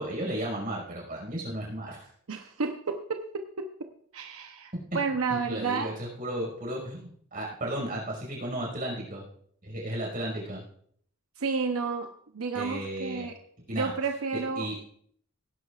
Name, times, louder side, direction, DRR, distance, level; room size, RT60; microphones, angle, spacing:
voice 1, 0.0-2.1 4.7-5.0 5.5-9.2 9.6-10.6 12.5-13.3 13.7-13.9 14.3-14.8, right 1 dB, 40° right, -2 dB, 5.2 m, -34 dB
voice 2, 2.3-3.7 4.1-5.9 11.4-13.4 13.7-14.7, right 4 dB, 85° right, 5 dB, 0.8 m, -31 dB
18.0 x 11.0 x 2.4 m, 0.63 s
head